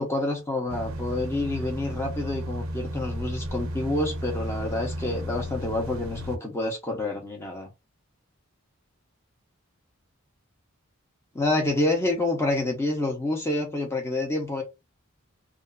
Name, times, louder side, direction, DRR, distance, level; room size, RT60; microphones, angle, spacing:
voice 1, 0.0-7.7 11.3-14.6, left 2 dB, 10° left, 0.8 m, -28 dB
sound 1, 0.7-6.4, equal, 70° right, 0.5 m, -33 dB
2.6 x 2.5 x 2.3 m
head